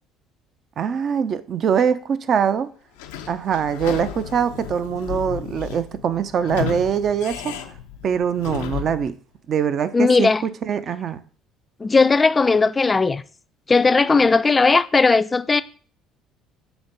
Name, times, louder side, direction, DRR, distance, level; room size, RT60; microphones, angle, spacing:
voice 1, 0.8-2.7 3.3-7.5 8.0-9.2 9.5-11.2, right 7 dB, 50° right, 0.6 m, -23 dB
Sliding door / Squeak, 3.0-9.1, left 10 dB, 90° left, 0.6 m, -33 dB
voice 2, 9.9-10.4 11.8-13.2 13.7-15.6, left 4 dB, 25° left, 0.4 m, -17 dB
7.0 x 3.5 x 3.9 m
supercardioid pair, 75°, 0 cm